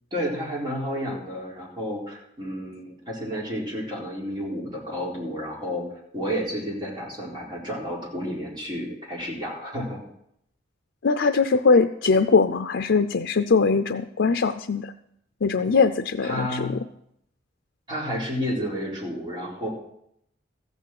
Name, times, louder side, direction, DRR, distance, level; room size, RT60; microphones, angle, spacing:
voice 1, 0.1-5.9 6.1-10.0 16.2-16.8 17.9-19.7, equal, 25° right, -4 dB, 4.0 m, -31 dB
voice 2, 11.0-14.9 15.4-16.7, left 4 dB, 70° left, 7 dB, 0.5 m, -21 dB
14.5 x 7.1 x 7.6 m, 0.75 s
head